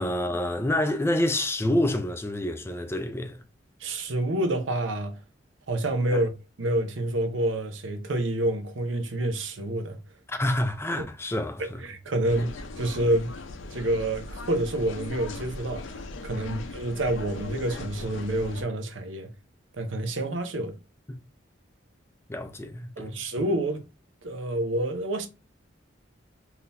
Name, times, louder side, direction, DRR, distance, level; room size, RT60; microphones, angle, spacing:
voice 1, 0.0-3.4 6.1-6.2 10.3-11.8 12.4-12.5 16.5-16.6 21.1-21.2 22.3-23.2, left 1 dB, 15° left, 0.4 m, -28 dB
voice 2, 3.8-5.2 5.7-6.3 6.6-10.0 11.6-13.3 13.7-19.3 19.8-20.8 23.0-23.8 24.2-25.3, right 1 dB, 80° right, 0.7 m, -28 dB
sound 1, 12.2-18.6, left 3 dB, 80° left, 0.5 m, -39 dB
3.7 x 2.8 x 2.5 m
head